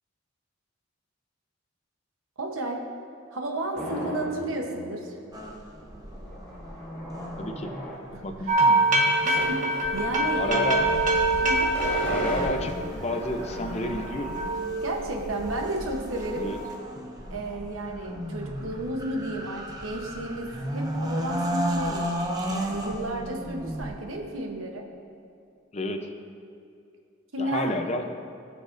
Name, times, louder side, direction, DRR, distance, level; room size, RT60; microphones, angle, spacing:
voice 1, 2.4-2.9 3.3-5.2 8.1-8.5 9.2-10.7 11.3-11.8 14.8-16.5 17.3-24.9 27.3-27.8, right 1 dB, 80° right, 2 dB, 1.0 m, -33 dB
sound 1, 3.7-4.5 4.9-5.0 5.2-7.9 9.4-9.6 10.0-10.1 11.2-11.3 11.6-14.3, equal, 10° left, 1.9 m, -36 dB
sound 2, 5.3-23.9, equal, 20° right, 0.8 m, -35 dB
voice 2, 7.4-7.7 8.2-8.8 10.3-10.8 12.1-14.4 16.4-16.6 25.7-26.1 27.4-28.2, left 1 dB, 35° left, 5 dB, 0.6 m, -30 dB
sound 3, 8.5-13.3 13.6-15.7 16.1-16.8, right 2 dB, 40° right, 1.3 m, -25 dB
19.0 x 6.4 x 2.6 m, 2.4 s
head